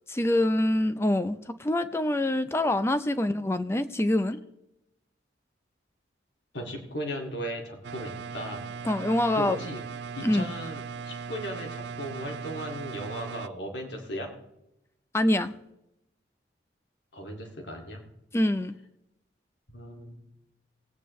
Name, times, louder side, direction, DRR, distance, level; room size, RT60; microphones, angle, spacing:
voice 1, 0.1-4.4 8.9-9.6 10.2-10.4 15.1-15.5 18.3-18.7, left 1 dB, 15° left, 11 dB, 0.5 m, -25 dB
voice 2, 6.5-8.7 9.3-9.8 10.1-14.3 17.1-18.0 19.7-20.2, equal, 75° left, 2 dB, 2.3 m, -37 dB
sound 1, 7.8-13.5, right 6 dB, 65° right, 0.4 m, -38 dB
19.0 x 8.9 x 3.1 m, 0.85 s
head